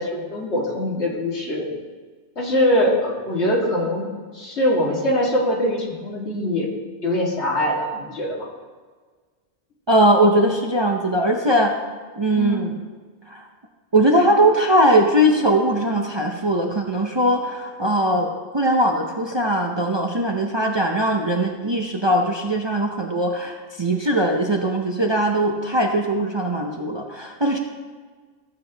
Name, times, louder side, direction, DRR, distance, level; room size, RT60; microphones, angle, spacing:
voice 1, 0.0-1.7 2.4-4.1 4.3-6.7 7.0-8.5 12.3-12.7, left 1 dB, 65° left, -2 dB, 2.1 m, -22 dB
voice 2, 9.9-11.7 12.2-12.8 13.3-13.4 13.9-27.6, right 1 dB, 30° right, 1 dB, 0.6 m, -20 dB
14.5 x 7.6 x 3.4 m, 1.5 s
omnidirectional pair, 1.2 m